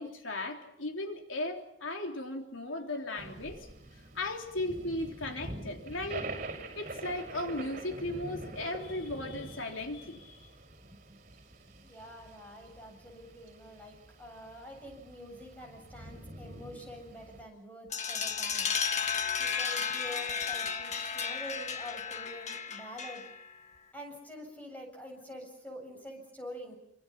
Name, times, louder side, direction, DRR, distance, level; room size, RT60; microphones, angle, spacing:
voice 1, 0.0-3.6 4.1-6.3 6.7-10.4, left 1 dB, 90° left, 3 dB, 3.4 m, -36 dB
sound 1, 3.2-17.4, right 2 dB, 40° right, 6.3 m, -46 dB
voice 2, 11.8-18.7 19.4-23.3 23.9-26.7, equal, 10° left, 1 dB, 7.7 m, -46 dB
sound 2, 17.9-23.5, left 6 dB, 35° left, 1.6 m, -33 dB
29.0 x 26.0 x 5.9 m, 0.76 s
head